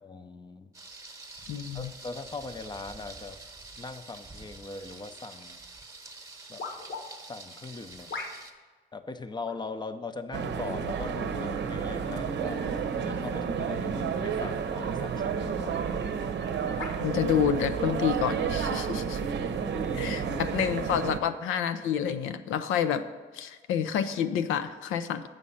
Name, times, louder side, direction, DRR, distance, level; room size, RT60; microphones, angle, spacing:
voice 1, 0.0-0.7 1.7-3.4 3.8-5.6 6.5-6.6 7.2-8.1 8.9-12.6 13.0-15.8 19.6-20.6, left 3 dB, 20° left, 9 dB, 0.6 m, -40 dB
Thunder, 0.7-8.5, right 3 dB, 15° right, 1.0 m, -47 dB
voice 2, 1.5-1.9 17.0-19.2 20.0-23.0 23.3-25.2, left 8 dB, 90° left, 10 dB, 0.6 m, -28 dB
sound 1, 6.6-7.0 8.1-8.6 9.4-9.7 10.7-11.1 11.9-12.0 13.9-14.2 14.7-14.9 15.7-15.9 16.8-17.0 17.8-18.0, left 3 dB, 70° left, 1.3 m, -40 dB
sound 2, 10.3-21.2, right 6 dB, 60° right, 0.7 m, -31 dB
7.8 x 6.1 x 5.6 m, 1.4 s
cardioid pair, 90°, 20 cm